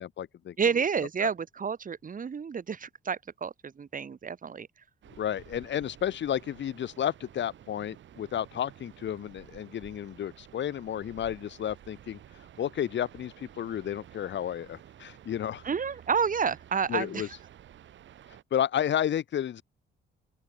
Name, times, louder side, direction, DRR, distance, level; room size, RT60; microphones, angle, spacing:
voice 1, 0.0-0.6 1.2-1.3 5.2-12.2 12.6-15.6 16.9-17.3 18.5-19.6, left 10 dB, 65° left, 5.3 m, -32 dB
voice 2, 0.6-4.7 15.6-17.3, right 6 dB, 45° right, 3.9 m, -30 dB
sound 1, 5.0-18.4, right 11 dB, 70° right, 5.5 m, -52 dB
open air
cardioid pair, 90°, 20 cm